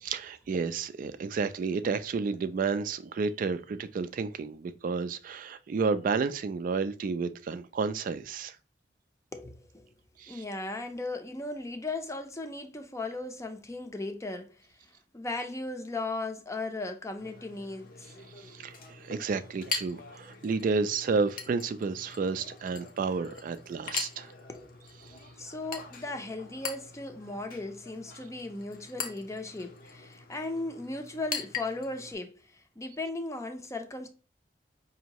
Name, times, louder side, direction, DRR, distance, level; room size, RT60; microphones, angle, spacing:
voice 1, 0.0-8.6 10.2-10.4 18.4-18.8 19.1-24.3, right 4 dB, 50° right, 0.3 m, -31 dB
voice 2, 9.3-9.9 10.3-18.1 20.2-20.3 24.5-34.1, left 2 dB, 15° left, 0.6 m, -37 dB
Chink clink, 17.2-32.1, left 5 dB, 55° left, 0.7 m, -42 dB
5.1 x 2.7 x 2.9 m
head